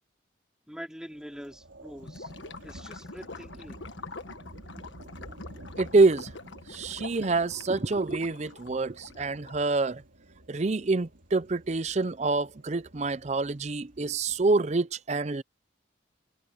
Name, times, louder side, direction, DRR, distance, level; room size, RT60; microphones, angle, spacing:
voice 1, 0.7-2.3 2.6-3.8, equal, 5° right, 3.1 m, -44 dB
sound 1, 1.0-14.5, right 1 dB, 85° right, 4.0 m, -51 dB
Gurgling / Liquid, 2.0-9.7, left 3 dB, 75° left, 1.5 m, -45 dB
voice 2, 5.8-6.3 6.7-10.0 10.5-15.4, right 3 dB, 35° right, 0.5 m, -26 dB
head